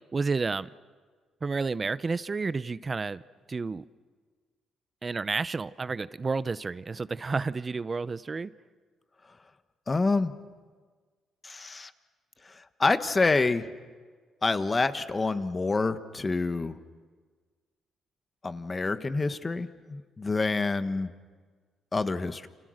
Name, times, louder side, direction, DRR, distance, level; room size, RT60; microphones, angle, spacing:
voice 1, 0.1-0.7 1.4-3.2 3.5-3.8 5.0-8.5, right 4 dB, 30° right, 17 dB, 0.7 m, -30 dB
voice 2, 9.9-10.3 11.4-11.9 12.8-13.7 14.4-16.8 18.4-21.1 21.9-22.5, left 3 dB, 25° left, 11 dB, 1.4 m, -27 dB
29.5 x 28.0 x 6.5 m, 1.5 s
cardioid pair, 90°, 0 cm